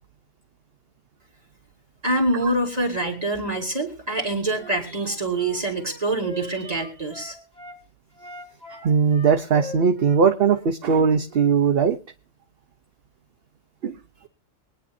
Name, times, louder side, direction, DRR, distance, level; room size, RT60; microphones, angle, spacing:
voice 1, 2.0-7.4, right 2 dB, 30° right, 2.7 m, -25 dB
Wind instrument woodwind instrument, 4.5-7.8 8.2-11.6, left 1 dB, 35° left, 4.0 m, -41 dB
voice 2, 8.8-12.0 13.8-13.9, right 6 dB, 55° right, 0.9 m, -19 dB
22.5 x 10.0 x 2.6 m
omnidirectional pair, 1.3 m